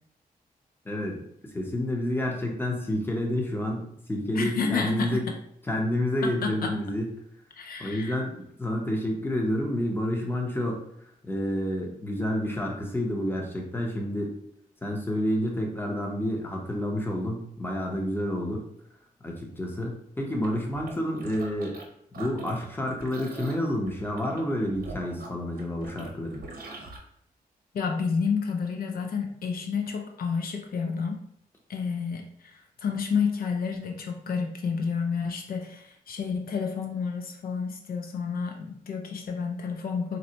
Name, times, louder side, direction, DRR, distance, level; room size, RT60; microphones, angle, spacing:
voice 1, 0.8-1.2 1.5-5.2 5.7-7.1 7.8-10.8 11.2-14.3 14.8-18.6 19.2-21.8 22.1-26.4, left 1 dB, 15° left, 0 dB, 0.7 m, -29 dB
voice 2, 4.3-5.3 6.2-6.8 7.6-8.2 27.7-31.2 31.7-40.2, left 5 dB, 75° left, 3 dB, 0.4 m, -30 dB
sound 1, 20.3-21.9 22.1-27.0, right 3 dB, 70° right, 0.7 m, -43 dB
4.0 x 2.1 x 2.8 m, 0.72 s
cardioid pair, 90°, 16 cm